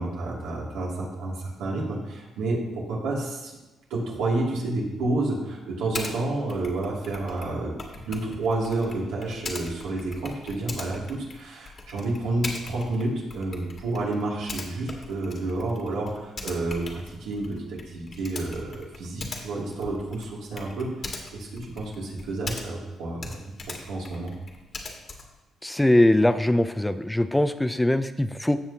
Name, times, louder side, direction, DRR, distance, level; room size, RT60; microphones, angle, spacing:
voice 1, 0.0-3.6 3.9-7.7 8.1-24.3, right 2 dB, 90° right, -4 dB, 2.6 m, -30 dB
Typing, 5.9-6.2 6.5-22.9 23.2-25.4, left 3 dB, 45° left, 1.7 m, -40 dB
voice 2, 25.6-28.6, left 1 dB, 10° left, 11 dB, 0.4 m, -21 dB
15.5 x 6.1 x 2.9 m, 1.1 s
cardioid pair, 90°, 0 cm